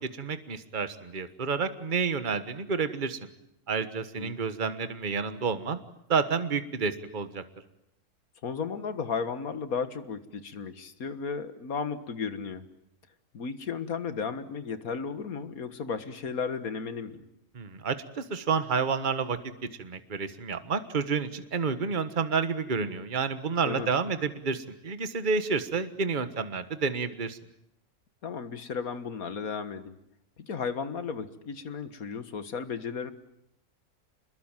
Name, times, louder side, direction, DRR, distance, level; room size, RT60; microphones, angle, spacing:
voice 1, 0.1-3.3 3.7-5.8 6.1-7.4 17.5-19.4 19.8-27.4, right 5 dB, 35° right, 10 dB, 1.5 m, -30 dB
voice 2, 8.4-12.6 13.3-17.2 23.7-23.9 28.2-30.0 30.5-33.1, left 5 dB, 70° left, 11 dB, 2.0 m, -34 dB
28.5 x 21.5 x 9.1 m, 0.77 s
omnidirectional pair, 1.6 m